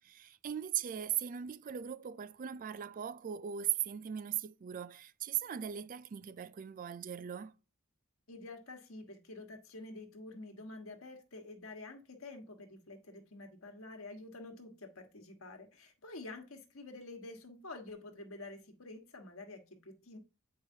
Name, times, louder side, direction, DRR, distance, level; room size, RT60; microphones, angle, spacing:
voice 1, 0.0-7.5, right 10 dB, 40° right, 0.3 m, -38 dB
voice 2, 8.3-20.2, left 2 dB, 70° left, 1.5 m, -48 dB
8.7 x 4.8 x 2.7 m
head